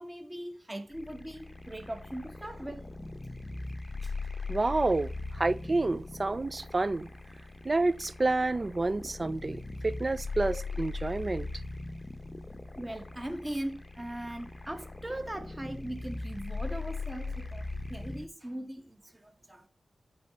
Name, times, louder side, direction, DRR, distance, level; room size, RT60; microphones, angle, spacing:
voice 1, 0.0-2.8 4.0-4.1 12.8-19.7, right 1 dB, 20° right, 1.1 m, -40 dB
sound 1, 0.9-18.3, left 3 dB, 20° left, 0.8 m, -40 dB
voice 2, 4.5-7.1 7.6-11.5, right 2 dB, 40° right, 0.3 m, -29 dB
8.6 x 3.8 x 6.9 m
cardioid pair, 50°, 0 cm